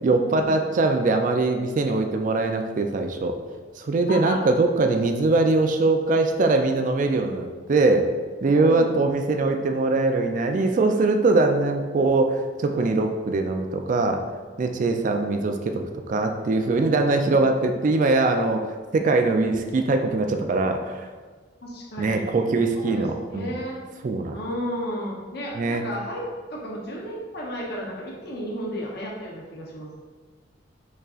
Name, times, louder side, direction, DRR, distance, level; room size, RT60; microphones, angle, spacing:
voice 1, 0.0-3.3 3.8-8.1 8.4-14.2 14.6-15.8 16.1-21.1 22.0-23.5 24.0-24.4 25.5-25.8, right 3 dB, 45° right, 5 dB, 0.3 m, -22 dB
voice 2, 8.6-9.0 15.1-15.3 21.6-22.2 22.8-23.8 24.3-26.2 26.5-29.9, equal, 60° left, -3 dB, 0.8 m, -33 dB
5.4 x 3.6 x 2.4 m, 1.5 s
head